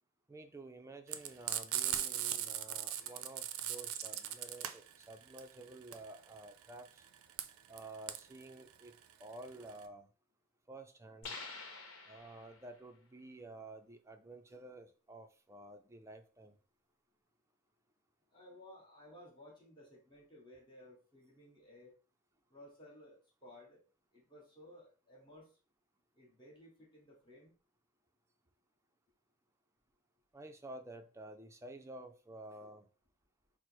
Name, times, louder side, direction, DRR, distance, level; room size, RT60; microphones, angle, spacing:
voice 1, 0.3-7.0 7.7-8.9 9.2-10.1 10.7-11.4 12.1-16.6 30.3-32.9, right 2 dB, 15° right, 0.4 m, -51 dB
Frying (food), 1.1-9.8, right 11 dB, 85° right, 0.4 m, -39 dB
sound 1, 11.2-12.8, left 3 dB, 85° left, 0.9 m, -48 dB
voice 2, 18.3-22.0 22.5-23.8 24.1-25.6 26.1-27.5, left 1 dB, 25° left, 1.3 m, -57 dB
4.6 x 2.0 x 4.4 m
head